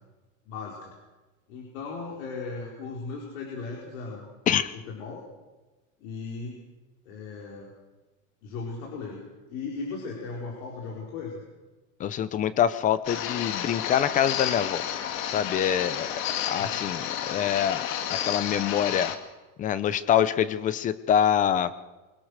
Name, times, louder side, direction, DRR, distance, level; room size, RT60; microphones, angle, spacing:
voice 1, 0.5-0.9 1.5-4.3 4.9-5.2 6.0-6.6 7.0-7.7 8.4-11.4 16.5-16.8, left 4 dB, 85° left, -2 dB, 5.0 m, -37 dB
voice 2, 12.0-14.8 15.3-16.1 16.5-19.1 19.6-21.7, left 9 dB, 20° left, 14 dB, 0.6 m, -25 dB
sound 1, 13.0-19.2, left 10 dB, 55° left, 2.1 m, -31 dB
24.5 x 18.5 x 6.6 m, 1.2 s
cardioid pair, 175°, 40 cm